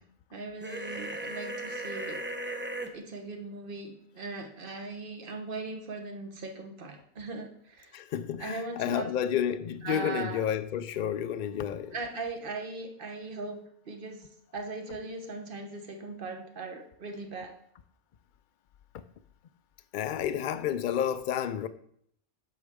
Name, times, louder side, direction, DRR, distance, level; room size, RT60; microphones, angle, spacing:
voice 1, 0.3-2.2 2.9-7.9 8.4-9.1 9.8-10.4 11.9-14.3 14.5-17.5, right 3 dB, 55° right, 1.2 m, -39 dB
sound 1, 0.6-2.9, right 1 dB, 15° right, 0.6 m, -36 dB
voice 2, 7.9-11.9 19.9-21.7, left 9 dB, 60° left, 0.6 m, -30 dB
8.4 x 6.4 x 3.6 m
omnidirectional pair, 1.1 m